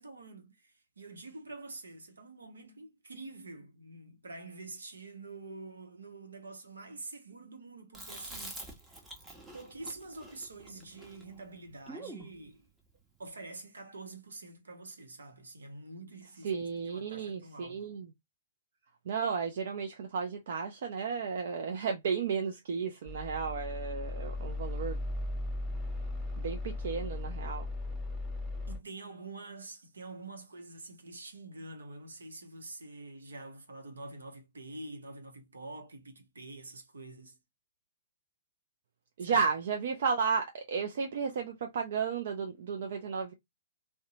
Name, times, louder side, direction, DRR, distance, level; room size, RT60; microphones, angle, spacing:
voice 1, 0.0-9.0 9.5-12.7 13.2-16.6 16.9-17.9 28.7-37.4 39.2-39.4, right 2 dB, 80° right, 0.8 m, -47 dB
Chewing mastication, 7.9-12.3, right 1 dB, 10° right, 0.8 m, -47 dB
voice 2, 16.4-18.1 19.1-25.0 26.4-27.7 39.2-43.3, right 5 dB, 60° right, 0.4 m, -33 dB
sound 1, 23.1-28.8, left 2 dB, 5° left, 1.1 m, -37 dB
2.7 x 2.2 x 2.6 m
figure-of-eight pair, 115°, 0 cm